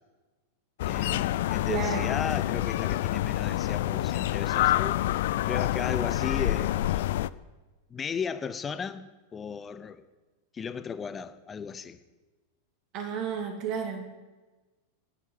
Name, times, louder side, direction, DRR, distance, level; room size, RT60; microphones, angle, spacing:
sound 1, 0.8-7.3, left 14 dB, 55° left, 0.3 m, -27 dB
voice 1, 0.8-7.1 7.9-10.0 10.5-12.0, left 6 dB, 20° left, 0.8 m, -36 dB
voice 2, 1.7-2.0 12.9-14.2, right 7 dB, 40° right, 2.3 m, -32 dB
10.5 x 9.2 x 8.7 m
figure-of-eight pair, 90°, 0 cm